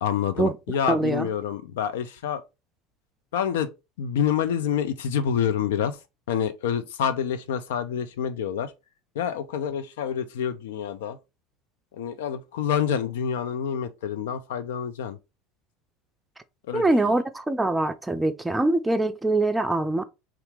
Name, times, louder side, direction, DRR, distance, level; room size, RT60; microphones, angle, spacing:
voice 1, 0.0-2.4 3.3-3.7 4.0-5.9 6.3-8.7 9.2-11.2 12.0-15.2 16.7-17.2, left 8 dB, 75° left, 0.4 m, -27 dB
voice 2, 0.9-1.3 16.7-20.0, right 2 dB, 10° right, 0.4 m, -23 dB
2.8 x 2.4 x 3.4 m
hypercardioid pair, 85°, 0 cm